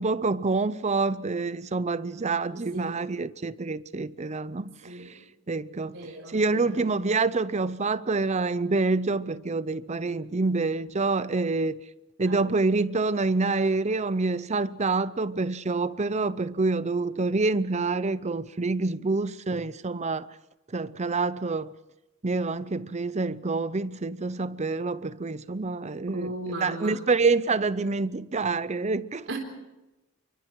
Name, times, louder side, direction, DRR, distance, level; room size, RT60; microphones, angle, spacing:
voice 1, 0.0-4.7 5.5-6.0 6.3-11.8 12.2-20.3 20.7-21.7 22.2-26.3 26.6-29.3, right 3 dB, 35° right, 0.7 m, -27 dB
voice 2, 2.5-3.0 4.8-5.2 5.9-6.9 12.2-12.5 26.1-27.0 29.3-29.4, right 1 dB, 70° right, 4.1 m, -37 dB
28.0 x 24.5 x 4.7 m
head